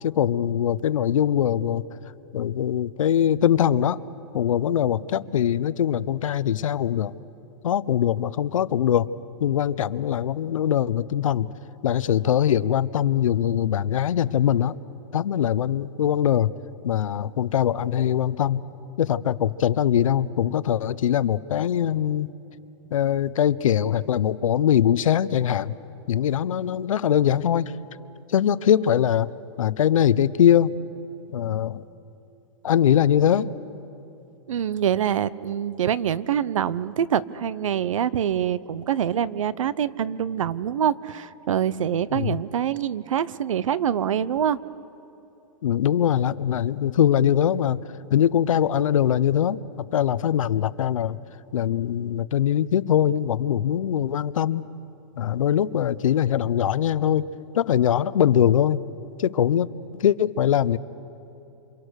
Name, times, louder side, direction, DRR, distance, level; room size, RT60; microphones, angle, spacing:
voice 1, 0.0-1.8 2.3-4.0 4.3-7.1 7.6-9.1 9.4-11.5 11.8-14.7 15.1-16.5 16.8-18.6 19.0-22.3 22.9-25.8 26.1-27.7 28.3-29.3 29.6-30.7 31.3-31.8 32.6-33.5 42.1-42.4 45.6-47.8 48.1-49.6 49.9-51.2 51.5-54.6 55.2-57.2 57.5-58.8 59.2-60.8, left 10 dB, 85° left, 16 dB, 0.8 m, -22 dB
voice 2, 34.5-44.6, right 9 dB, 80° right, 19 dB, 0.9 m, -25 dB
28.0 x 27.5 x 6.5 m, 2.9 s
hypercardioid pair, 175°, 17 cm